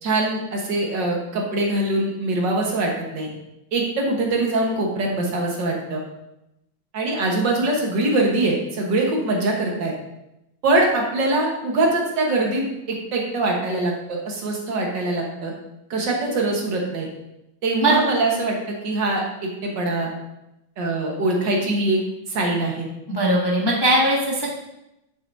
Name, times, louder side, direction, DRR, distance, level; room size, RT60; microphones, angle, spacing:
voice 1, 0.0-3.3 3.7-6.0 6.9-9.9 10.6-15.5 15.9-17.1 17.6-20.1 20.8-22.0 22.3-22.9, right 2 dB, 60° right, 0 dB, 1.9 m, -23 dB
voice 2, 23.1-24.5, right 1 dB, 15° left, -4 dB, 0.8 m, -19 dB
9.3 x 6.9 x 2.7 m, 0.88 s
omnidirectional pair, 2.2 m